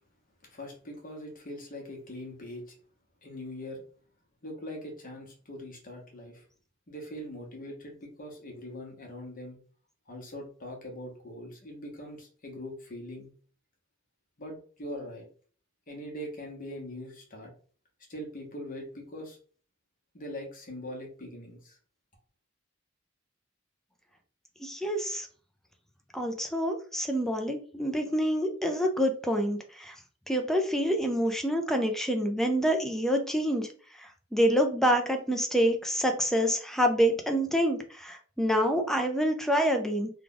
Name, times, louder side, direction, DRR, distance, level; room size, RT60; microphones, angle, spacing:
voice 1, 0.5-2.6 3.2-3.8 4.4-6.4 6.9-9.6 10.1-13.3 14.4-15.2 15.9-17.5 18.1-19.4 20.1-21.8, left 1 dB, 45° left, 0 dB, 1.1 m, -42 dB
voice 2, 24.6-25.3 26.1-29.9 30.3-33.7 34.3-40.1, equal, ahead, 4 dB, 0.5 m, -27 dB
3.2 x 2.3 x 3.8 m, 0.43 s
head